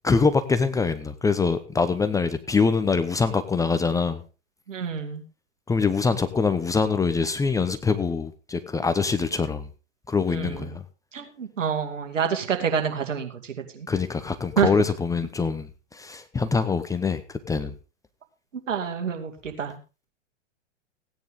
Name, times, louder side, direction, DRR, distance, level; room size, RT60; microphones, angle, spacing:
voice 1, 0.0-4.2 5.7-9.7 10.1-10.8 13.9-17.7, left 4 dB, 10° left, 11 dB, 0.8 m, -24 dB
voice 2, 4.7-5.2 10.3-10.8 11.1-13.9 14.6-14.7 18.7-19.8, right 7 dB, 80° right, 4 dB, 2.5 m, -27 dB
16.0 x 9.5 x 3.7 m, 0.32 s
hypercardioid pair, 115°, 37 cm